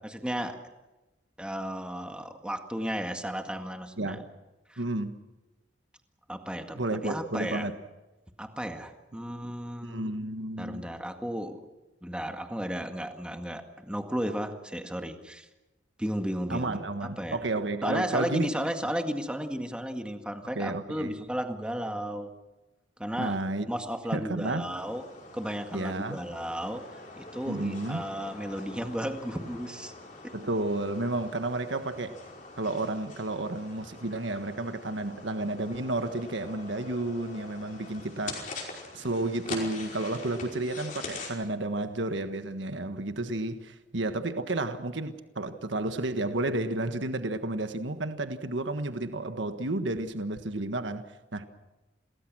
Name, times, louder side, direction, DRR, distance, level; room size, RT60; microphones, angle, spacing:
voice 1, 0.0-0.6 1.4-4.2 4.7-4.8 6.3-7.7 8.4-10.2 10.6-11.6 12.0-15.5 16.0-17.4 17.8-22.3 23.0-23.4 23.7-25.0 25.3-29.9 30.2-30.4, equal, 5° right, 1.9 m, -34 dB
voice 2, 4.8-5.1 6.7-7.7 9.8-10.8 16.5-18.5 20.5-21.1 23.2-23.7 24.1-24.7 25.7-26.2 27.5-28.0 30.3-32.2 32.6-38.5 38.9-51.0 51.3-51.5, right 2 dB, 80° right, 1.5 m, -31 dB
sound 1, 24.8-41.3, left 3 dB, 45° left, 5.2 m, -44 dB
28.0 x 20.0 x 6.3 m
head